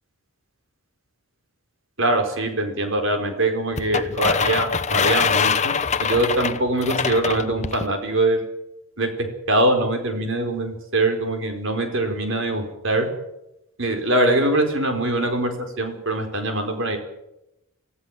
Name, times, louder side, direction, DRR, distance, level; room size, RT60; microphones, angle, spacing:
voice 1, 2.0-5.7 6.0-8.4 9.0-13.1 13.8-15.5 15.8-17.0, right 1 dB, 55° right, 5 dB, 4.6 m, -23 dB
sound 1, 3.8-7.9, left 6 dB, 30° left, 0.9 m, -23 dB
25.5 x 15.5 x 7.5 m, 0.90 s
head